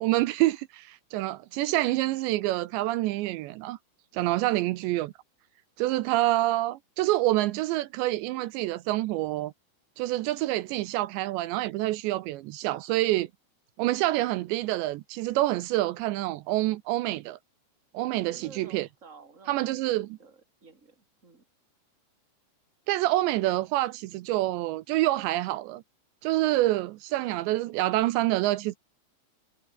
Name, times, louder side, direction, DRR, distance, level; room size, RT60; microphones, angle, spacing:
voice 1, 0.0-3.8 4.1-5.1 5.8-9.5 10.0-13.3 13.8-17.4 17.9-18.9 19.5-20.1 22.9-25.8 26.2-28.8, right 16 dB, 80° right, 2.7 m, -27 dB
voice 2, 18.3-21.4, right 4 dB, 15° right, 5.0 m, -53 dB
omnidirectional pair, 5.8 m